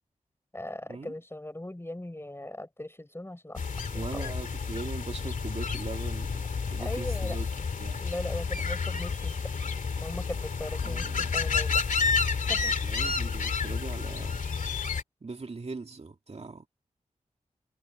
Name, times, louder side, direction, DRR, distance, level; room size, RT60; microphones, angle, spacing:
voice 1, 0.5-3.6 3.9-4.3 6.8-7.4 8.0-9.3 10.0-11.8 12.5-12.7, left 1 dB, 20° left, 5.0 m, -39 dB
sound 1, 3.6-15.0, left 5 dB, 75° left, 2.4 m, -30 dB
voice 2, 3.9-7.5 7.8-8.1 10.8-11.3 12.6-14.4 15.2-16.7, right 3 dB, 50° right, 2.5 m, -40 dB
cardioid pair, 40°, 13 cm